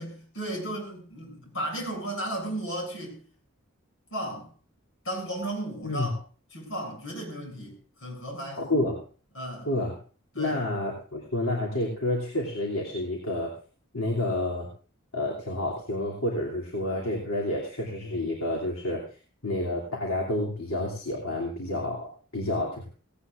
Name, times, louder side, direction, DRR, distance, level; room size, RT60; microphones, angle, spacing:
voice 1, 0.0-3.2 4.1-4.5 5.0-6.2 6.5-8.6 9.3-9.7 10.3-10.6, right 1 dB, 65° left, 0 dB, 7.1 m, -34 dB
voice 2, 8.6-9.0 9.6-9.9 10.4-13.5 13.9-14.7 15.1-19.0 19.4-22.9, left 1 dB, 80° left, -2 dB, 2.9 m, -29 dB
17.5 x 17.5 x 2.5 m, 0.40 s
head